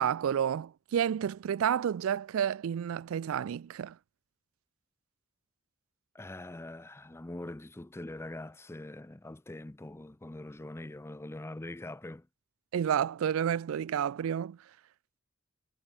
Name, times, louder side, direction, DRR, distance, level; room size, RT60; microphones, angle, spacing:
voice 1, 0.0-3.9 12.7-14.6, right 8 dB, 75° right, 0.3 m, -30 dB
voice 2, 6.1-12.3, left 1 dB, 10° left, 0.5 m, -43 dB
head